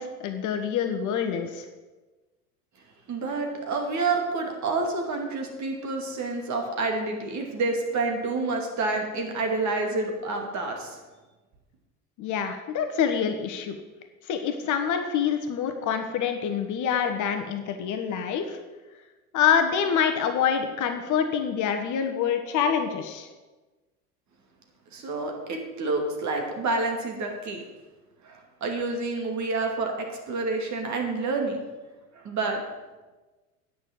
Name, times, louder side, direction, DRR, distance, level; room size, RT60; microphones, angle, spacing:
voice 1, 0.0-1.6 12.2-13.8 14.3-18.6 19.3-23.3, left 7 dB, 40° left, 7 dB, 1.2 m, -26 dB
voice 2, 3.1-11.0 24.9-27.6 28.2-31.6 32.1-32.6, right 3 dB, 35° right, 3 dB, 2.5 m, -28 dB
9.5 x 6.6 x 7.6 m, 1.2 s
figure-of-eight pair, 75°, 47 cm